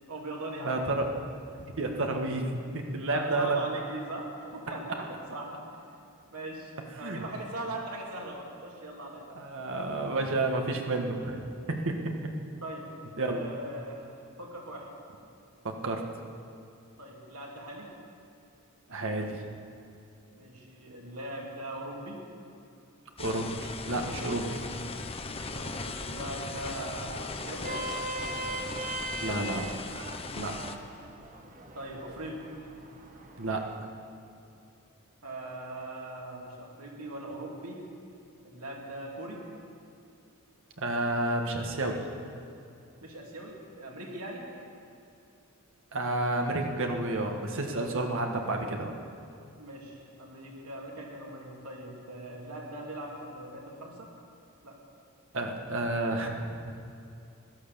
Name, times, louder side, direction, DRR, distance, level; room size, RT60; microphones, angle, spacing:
voice 1, 0.1-1.1 3.1-5.6 6.3-9.2 12.6-12.9 13.2-14.9 17.0-17.9 20.3-22.2 25.3-28.6 29.1-29.5 31.7-32.4 35.2-37.8 38.4-39.4 43.0-44.4 49.6-54.1 54.6-54.7 55.4-55.7, right 1 dB, 85° right, -2 dB, 3.1 m, -40 dB
voice 2, 0.6-1.1 1.8-3.6 7.0-7.2 9.4-11.4 11.7-12.3 13.2-13.4 15.6-16.0 18.9-19.4 23.2-24.6 29.2-29.6 30.4-30.6 33.4-33.7 40.8-42.0 45.9-48.9 55.3-56.7, right 2 dB, 65° right, 2 dB, 1.7 m, -30 dB
sound 1, 23.2-30.8, left 3 dB, 25° left, 0.8 m, -38 dB
Vehicle horn car horn honking, 27.4-33.8, right 1 dB, 35° right, 1.3 m, -40 dB
16.5 x 12.5 x 7.0 m, 2.6 s
head